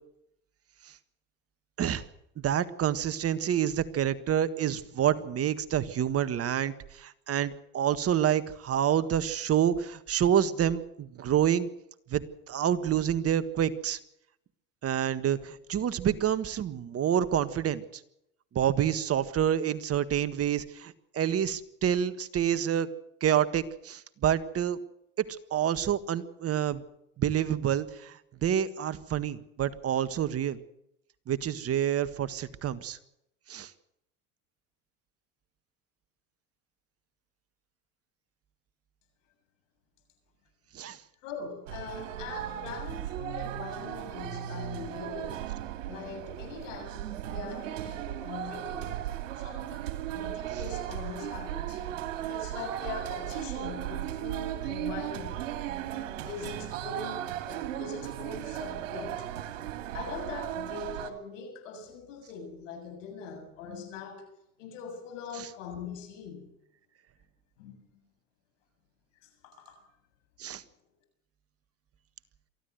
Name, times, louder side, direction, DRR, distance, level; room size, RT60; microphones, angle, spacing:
voice 1, 2.4-11.7 12.1-14.0 14.8-17.8 18.5-22.9 23.2-24.8 25.2-25.3 25.5-26.8 27.2-30.6 31.3-33.0 33.5-33.7 40.7-41.0 70.4-70.6, right 10 dB, 40° right, 1.6 m, -28 dB
voice 2, 41.2-45.4 45.9-49.0 49.4-51.8 52.3-55.5 56.2-59.3 59.9-64.3 64.6-66.5 67.6-67.8 69.2-69.8, left 5 dB, 80° left, 7.3 m, -42 dB
sound 1, 41.7-61.1, right 12 dB, 85° right, 2.7 m, -36 dB
23.5 x 15.0 x 8.0 m
supercardioid pair, 95°, 37 cm